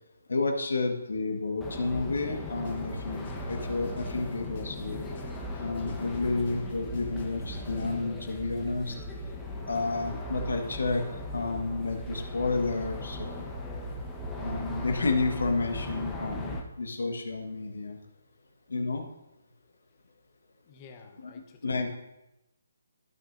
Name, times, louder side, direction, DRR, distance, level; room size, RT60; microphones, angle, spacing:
voice 1, 0.3-5.1 5.6-9.0 9.7-11.0 11.3-13.4 14.4-18.0 18.7-19.0 21.2-21.3 21.6-22.0, left 3 dB, 70° left, 4 dB, 1.6 m, -31 dB
sound 1, 1.6-16.6, left 1 dB, 5° left, 1.1 m, -38 dB
sound 2, 2.5-7.9, left 2 dB, 45° left, 2.0 m, -50 dB
voice 2, 20.6-22.0, left 5 dB, 25° left, 5 dB, 1.1 m, -52 dB
15.0 x 6.2 x 2.7 m, 0.91 s
figure-of-eight pair, 145°, 0 cm